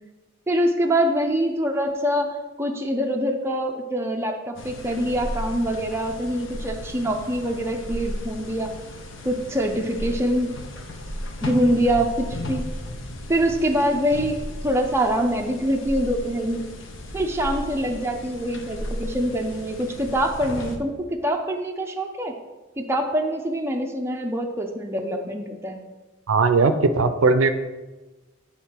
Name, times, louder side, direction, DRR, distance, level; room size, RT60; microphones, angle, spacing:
voice 1, 0.5-8.7 9.2-10.5 11.4-12.7 13.3-14.4 14.6-16.7 17.1-22.4 22.8-25.8, equal, 15° right, 2 dB, 0.5 m, -24 dB
sound 1, 4.6-20.8, left 1 dB, 65° left, 0.8 m, -35 dB
voice 2, 26.3-27.5, right 4 dB, 80° right, 10 dB, 0.5 m, -18 dB
8.9 x 3.6 x 4.4 m, 1.2 s
head